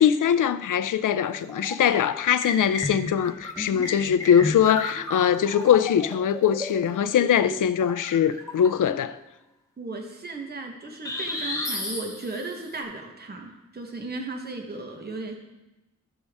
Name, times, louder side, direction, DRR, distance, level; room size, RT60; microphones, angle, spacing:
voice 1, 0.0-9.2, left 9 dB, 90° left, 0.5 m, -22 dB
sound 1, 1.2-2.0 2.4-9.0 11.1-12.6, left 2 dB, 10° left, 1.0 m, -34 dB
voice 2, 9.8-15.3, right 3 dB, 30° right, 1.0 m, -35 dB
14.0 x 5.3 x 3.5 m
wide cardioid pair, 170°, 31 cm